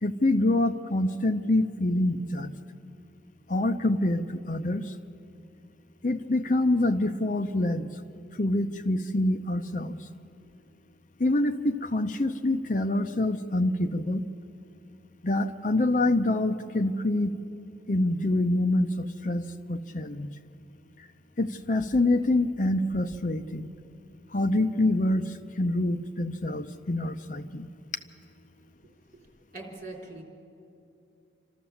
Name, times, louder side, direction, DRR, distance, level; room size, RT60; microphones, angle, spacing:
voice 1, 0.0-2.5 3.5-4.9 6.0-8.0 8.4-10.0 11.2-14.3 15.2-17.4 17.9-20.3 21.4-23.7 24.3-27.7, left 1 dB, 45° left, 7 dB, 0.7 m, -26 dB
voice 2, 29.5-30.2, right 2 dB, 45° right, -2 dB, 3.7 m, -41 dB
28.0 x 13.5 x 7.1 m, 2.7 s
head